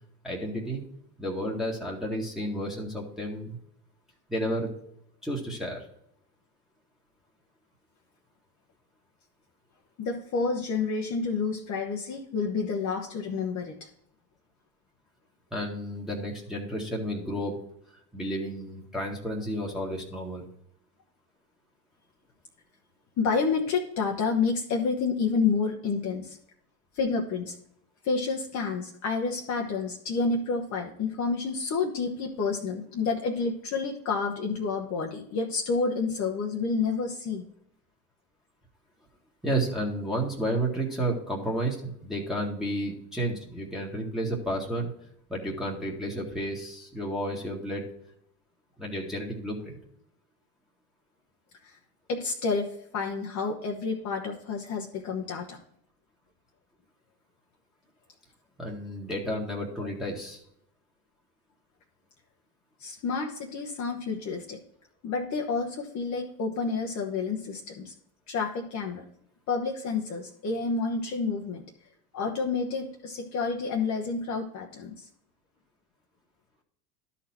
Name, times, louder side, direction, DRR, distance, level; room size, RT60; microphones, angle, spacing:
voice 1, 0.2-0.8 1.2-3.6 4.3-4.7 5.2-5.9 15.5-17.6 18.1-20.4 39.4-44.9 45.3-47.9 48.8-49.8 58.6-60.4, right 1 dB, ahead, -3 dB, 1.7 m, -31 dB
voice 2, 10.0-13.9 23.2-26.4 26.9-27.5 28.0-37.4 51.6-51.7 52.1-55.6 62.8-64.6 65.0-67.9 68.3-69.0 69.5-71.6 72.1-75.1, left 4 dB, 35° left, 0 dB, 1.2 m, -29 dB
12.5 x 4.2 x 4.4 m, 0.73 s
hypercardioid pair, 85°, 48 cm